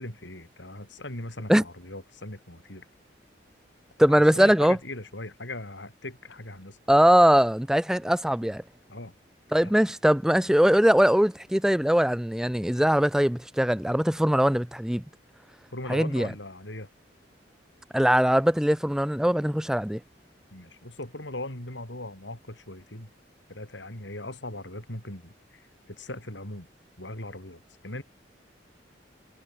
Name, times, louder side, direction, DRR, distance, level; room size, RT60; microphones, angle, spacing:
voice 1, 0.0-2.9 4.1-6.8 8.9-9.1 9.6-9.7 15.7-16.9 20.5-23.1 23.5-26.7 27.0-28.0, left 1 dB, 80° left, 7.2 m, -39 dB
voice 2, 4.0-4.8 6.9-8.6 9.5-15.0 15.9-16.3 17.9-20.0, equal, 5° right, 0.4 m, -21 dB
head